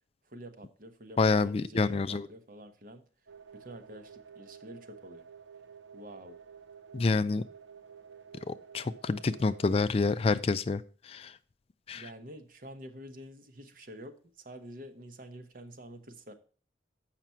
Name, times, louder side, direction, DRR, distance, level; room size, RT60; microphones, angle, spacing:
voice 1, 0.2-3.1 3.5-5.3 5.9-6.4 11.9-16.3, equal, 50° right, 8 dB, 0.9 m, -48 dB
voice 2, 1.2-2.3 6.9-7.4 8.5-11.3 11.9-12.1, left 3 dB, 35° left, 13 dB, 0.3 m, -28 dB
sound 1, 3.3-9.8, right 7 dB, 85° right, 0.7 m, -51 dB
7.4 x 5.9 x 5.6 m, 0.40 s
head